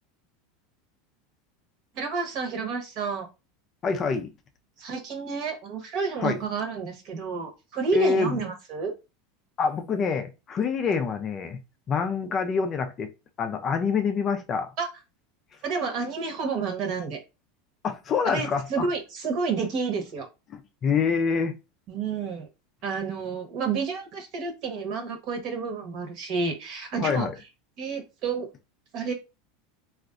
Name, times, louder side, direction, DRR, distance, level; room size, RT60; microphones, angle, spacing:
voice 1, 1.9-3.3 4.8-8.9 14.8-14.9 15.6-17.2 18.2-20.3 21.9-22.5 22.8-27.3 27.8-28.5 28.9-29.1, right 5 dB, 45° right, 1.1 m, -30 dB
voice 2, 3.8-4.3 6.2-6.4 7.9-8.4 9.6-11.6 11.9-13.1 13.4-14.7 17.8-18.9 20.8-21.5 27.0-27.3, left 5 dB, 30° left, 0.4 m, -26 dB
3.5 x 2.4 x 2.4 m
supercardioid pair, 150°, 0 cm